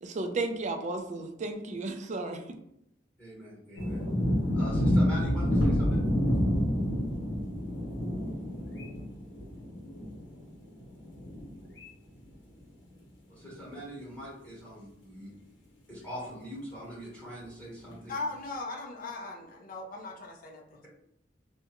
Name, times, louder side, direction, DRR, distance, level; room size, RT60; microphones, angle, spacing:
voice 1, 0.0-2.4, right 3 dB, 40° right, 5 dB, 0.4 m, -33 dB
voice 2, 3.2-4.0 4.5-6.0 13.3-15.3 15.9-18.2, equal, 10° left, -7 dB, 1.1 m, -42 dB
sound 1, 3.8-11.9 12.2-12.3 13.4-13.5 13.7-13.8 16.1-16.2 17.9-18.0, equal, 75° left, 0.9 m, -28 dB
voice 3, 18.1-20.9, left 3 dB, 50° left, 1 dB, 0.4 m, -38 dB
3.5 x 2.1 x 2.9 m, 0.78 s
head